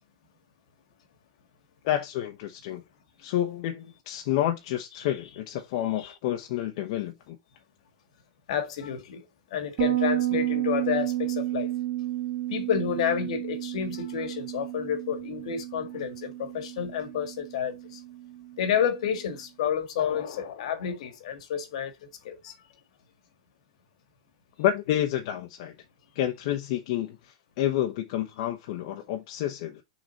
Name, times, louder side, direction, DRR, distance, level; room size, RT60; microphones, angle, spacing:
voice 1, 1.8-2.8 3.2-7.4 24.6-25.7 26.1-29.8, left 12 dB, 50° left, 1.0 m, -29 dB
voice 2, 8.5-9.2 9.5-11.7 12.5-18.0 18.6-22.5, left 8 dB, 65° left, 1.6 m, -30 dB
Bass guitar, 9.8-19.1, right 14 dB, 45° right, 2.2 m, -32 dB
6.4 x 3.9 x 4.0 m
supercardioid pair, 160°, 4 cm